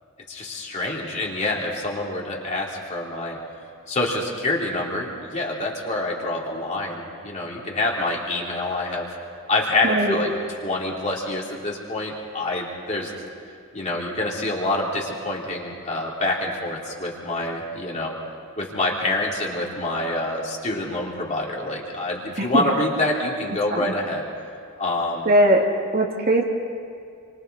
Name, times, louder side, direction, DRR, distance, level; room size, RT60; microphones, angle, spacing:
voice 1, 0.3-3.4 3.9-9.1 9.5-10.3 10.6-13.1 13.7-18.1 18.6-24.2 24.8-25.3, left 2 dB, 30° left, -3 dB, 3.2 m, -26 dB
voice 2, 9.8-10.2 22.4-22.6 23.7-23.9 25.3-25.7 25.9-26.4, right 1 dB, 45° right, -1 dB, 2.3 m, -19 dB
29.5 x 24.5 x 4.2 m, 2.4 s
head